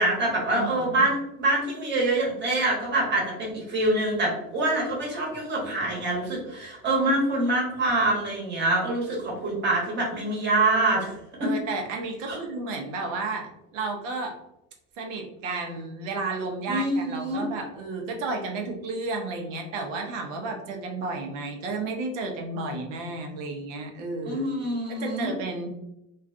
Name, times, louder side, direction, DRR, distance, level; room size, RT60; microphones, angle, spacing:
voice 1, 0.0-11.5 12.3-12.4 16.7-17.4 24.2-25.3, right 2 dB, 30° right, -3 dB, 1.0 m, -25 dB
voice 2, 0.5-1.0 11.4-14.3 15.0-24.5 25.0-25.7, right 3 dB, 85° right, 2 dB, 0.7 m, -32 dB
2.4 x 2.2 x 2.4 m, 0.85 s
supercardioid pair, 110°, 38 cm